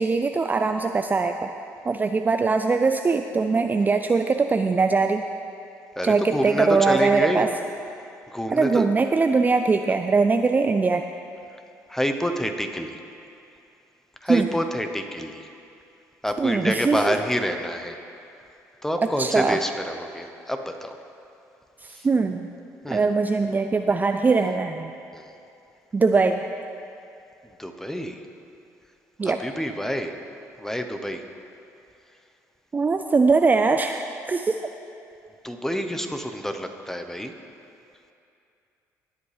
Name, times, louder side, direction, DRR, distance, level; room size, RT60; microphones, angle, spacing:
voice 1, 0.0-1.5 1.9-5.3 6.0-7.5 8.5-11.0 14.3-14.5 16.4-17.2 19.0-19.6 21.8-22.5 22.9-24.9 25.9-26.4 29.2-29.4 32.7-34.6, right 4 dB, 25° right, 6 dB, 0.4 m, -21 dB
voice 2, 6.0-7.5 8.3-8.9 11.9-13.0 14.2-15.5 16.2-18.0 18.8-21.0 21.9-22.1 22.8-23.0 25.1-25.3 27.6-28.2 29.2-30.1 30.6-31.2 35.4-37.3, equal, 5° left, 5 dB, 0.9 m, -27 dB
17.5 x 8.0 x 3.4 m, 2.6 s
supercardioid pair, 65°, 7 cm